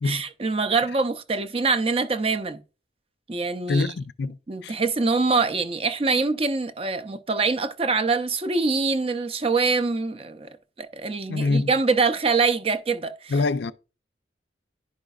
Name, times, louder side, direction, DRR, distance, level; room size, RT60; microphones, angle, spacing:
voice 1, 0.0-2.6 3.3-3.9 4.5-10.5 10.8-13.3, right 4 dB, 30° right, 0.5 m, -24 dB
voice 2, 3.7-4.8 11.3-11.7 13.3-13.7, left 3 dB, 60° left, 0.4 m, -25 dB
10.5 x 5.1 x 2.3 m
head